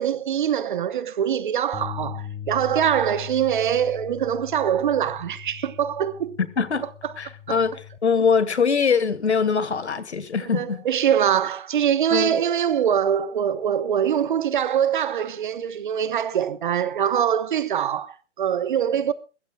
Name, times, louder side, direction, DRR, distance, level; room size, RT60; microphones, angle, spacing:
voice 1, 0.0-6.4 7.0-7.1 7.5-7.6 10.5-19.1, right 9 dB, 40° right, 1.2 m, -23 dB
sound 1, 1.7-8.0, left 10 dB, 15° left, 1.1 m, -39 dB
voice 2, 6.4-6.8 7.2-10.8 12.1-12.4, left 5 dB, 65° left, 1.9 m, -23 dB
22.0 x 15.5 x 2.3 m
figure-of-eight pair, 125°, 36 cm